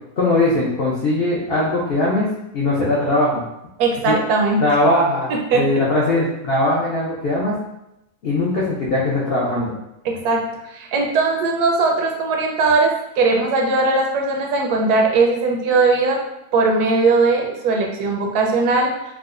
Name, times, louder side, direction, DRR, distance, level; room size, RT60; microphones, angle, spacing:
voice 1, 0.2-2.3 2.5-3.4 4.0-4.2 4.6-7.5 8.2-9.7, left 1 dB, 70° left, -5 dB, 0.5 m, -20 dB
voice 2, 3.8-4.6 5.3-5.6 10.0-16.2 16.5-18.9, right 3 dB, 75° right, 1 dB, 1.1 m, -19 dB
4.8 x 2.1 x 2.4 m, 0.87 s
omnidirectional pair, 1.7 m